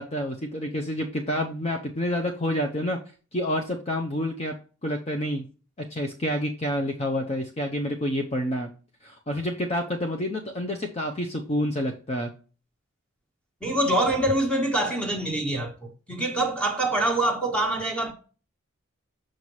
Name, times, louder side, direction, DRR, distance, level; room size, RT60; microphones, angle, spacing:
voice 1, 0.0-3.0 3.3-4.5 4.8-5.5 5.9-8.7 9.0-12.3, left 1 dB, 30° left, 0.6 m, -28 dB
voice 2, 13.6-18.1, right 1 dB, 5° left, 1.4 m, -25 dB
6.5 x 5.5 x 3.1 m
head